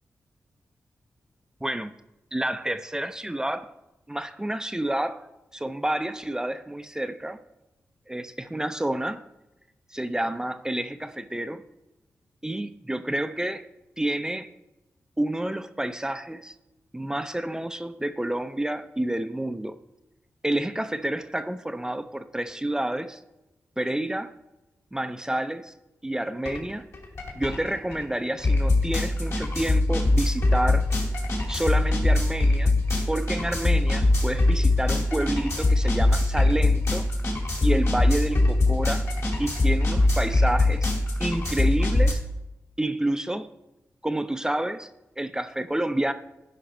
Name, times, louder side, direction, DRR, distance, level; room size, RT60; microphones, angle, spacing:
voice 1, 1.6-1.9 2.3-3.7 4.1-7.4 8.1-9.2 9.9-11.6 12.4-13.7 14.0-14.5 15.2-16.5 16.9-19.8 20.4-23.2 23.8-24.3 24.9-25.7 26.0-26.8 27.3-30.9 31.5-32.8 33.1-37.1 37.6-39.0 39.4-40.9 41.2-42.2 42.8-43.5 44.0-44.9 45.2-46.1, right 1 dB, 10° right, 10 dB, 0.5 m, -29 dB
sound 1, 26.4-26.6 26.9-42.1, left 2 dB, 60° left, 2.5 m, -22 dB
11.5 x 5.1 x 4.4 m, 0.95 s
cardioid pair, 65°, 5 cm